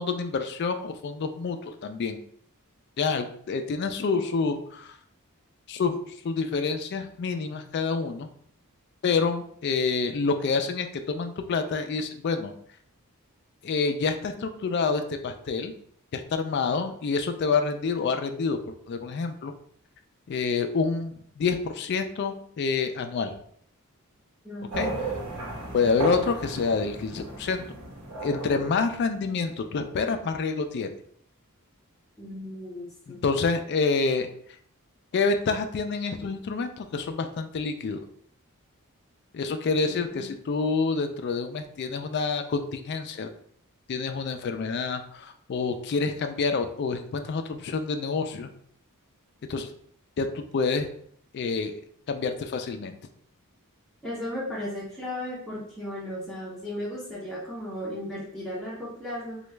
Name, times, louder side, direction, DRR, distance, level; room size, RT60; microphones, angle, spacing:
voice 1, 0.0-2.2 3.0-5.0 5.7-6.0 6.2-8.3 9.0-12.5 13.6-15.7 16.1-18.6 18.9-19.5 20.3-23.3 24.8-24.9 25.7-27.6 28.2-30.9 33.1-34.3 35.1-38.0 39.3-43.3 43.9-48.5 49.5-49.7 50.2-50.9 51.3-51.7 52.1-52.9, left 4 dB, 50° left, 7 dB, 0.3 m, -27 dB
voice 2, 24.4-24.9 32.2-33.2 39.8-40.3 54.0-59.4, left 1 dB, ahead, -7 dB, 0.7 m, -36 dB
sound 1, 24.7-29.5, right 2 dB, 80° right, 1.0 m, -35 dB
3.0 x 2.3 x 3.2 m, 0.63 s
head